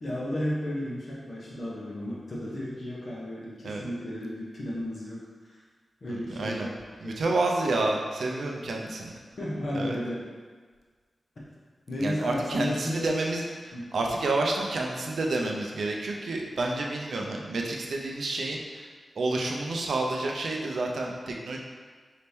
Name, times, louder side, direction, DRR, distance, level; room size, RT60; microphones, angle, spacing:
voice 1, 0.0-5.6 6.0-6.7 7.0-7.2 9.4-10.2 11.9-13.1 13.7-13.8, left 1 dB, 45° left, -5 dB, 0.9 m, -33 dB
voice 2, 6.1-6.7 7.0-9.1 9.7-10.0 12.0-18.9 19.2-21.6, right 2 dB, 75° right, 0 dB, 0.5 m, -29 dB
4.2 x 2.8 x 3.5 m, 1.5 s
wide cardioid pair, 180°, 0 cm